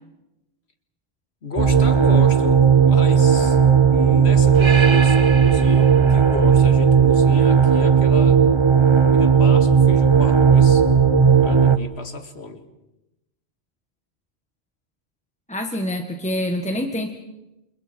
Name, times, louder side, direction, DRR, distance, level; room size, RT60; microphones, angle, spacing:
voice 1, 1.4-3.6 3.9-8.4 9.1-10.9 11.4-12.6, left 3 dB, 80° left, 7 dB, 2.3 m, -33 dB
sound 1, 1.6-11.8, right 6 dB, 30° right, 1.0 m, -15 dB
voice 2, 15.5-17.1, left 1 dB, 5° left, 4 dB, 1.6 m, -26 dB
29.5 x 27.5 x 4.6 m, 0.94 s
omnidirectional pair, 1.1 m